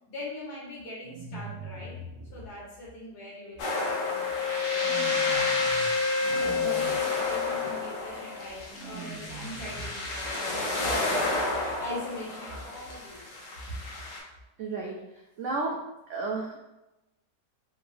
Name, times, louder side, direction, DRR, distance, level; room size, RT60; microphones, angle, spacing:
voice 1, 0.1-1.9 2.3-5.6 6.4-13.5, left 1 dB, 65° left, -6 dB, 1.9 m, -41 dB
sound 1, 1.0-2.5 4.8-5.9 6.2-6.9 8.7-9.9, right 3 dB, 65° right, 0.9 m, -42 dB
sound 2, 3.6-14.2, left 2 dB, 80° left, 1.4 m, -32 dB
Wind instrument woodwind instrument, 3.6-8.5, left 6 dB, 30° right, 0.8 m, -29 dB
voice 2, 14.6-15.0 15.4-15.8 16.1-16.6, right 3 dB, 90° right, -1 dB, 0.6 m, -32 dB
3.8 x 2.5 x 3.2 m, 0.97 s
omnidirectional pair, 1.8 m